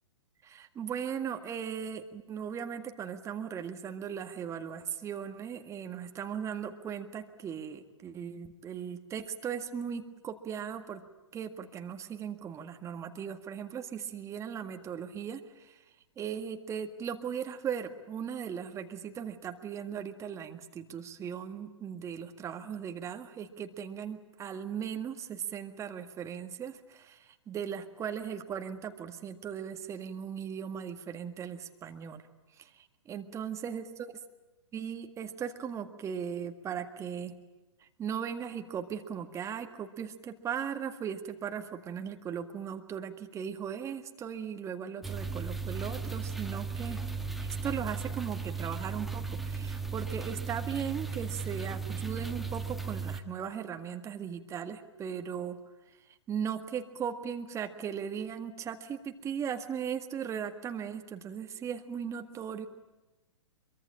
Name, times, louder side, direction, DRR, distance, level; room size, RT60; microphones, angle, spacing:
voice 1, 0.4-11.0 11.3-32.2 32.6-33.9 34.7-37.4 37.8-55.6 55.9-62.7, right 8 dB, 20° right, 7 dB, 1.8 m, -38 dB
sound 1, 45.0-53.2, right 5 dB, ahead, 1.7 m, -36 dB
25.0 x 23.5 x 8.8 m, 1.1 s
figure-of-eight pair, 115°, 16 cm